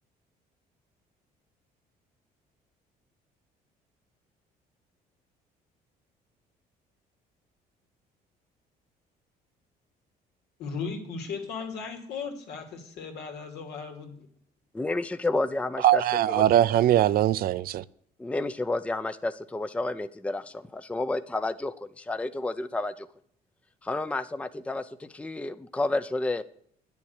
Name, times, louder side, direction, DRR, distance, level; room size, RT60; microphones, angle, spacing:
voice 1, 10.6-14.3, left 5 dB, 75° left, 2.7 m, -36 dB
voice 2, 14.7-16.0 16.3-16.4 18.2-23.1 23.8-26.4, left 2 dB, 5° left, 0.5 m, -30 dB
voice 3, 15.8-17.8, right 12 dB, 65° right, 0.5 m, -21 dB
10.0 x 7.1 x 8.1 m
cardioid pair, 110°, 17 cm